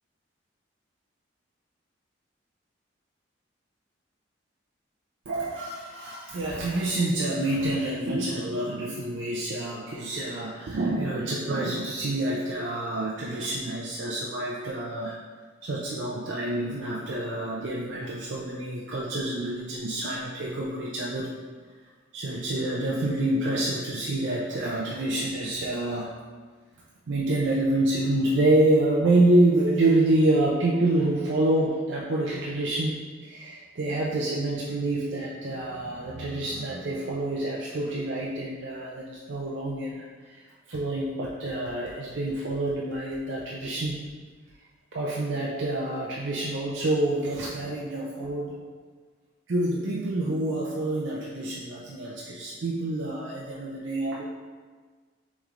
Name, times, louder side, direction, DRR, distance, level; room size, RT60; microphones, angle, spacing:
voice 1, 5.3-15.2 15.6-21.3 22.1-26.1 27.1-44.0 44.9-48.5 49.5-54.2, right 1 dB, 65° right, -4 dB, 0.5 m, -27 dB
6.3 x 3.1 x 2.5 m, 1.5 s
head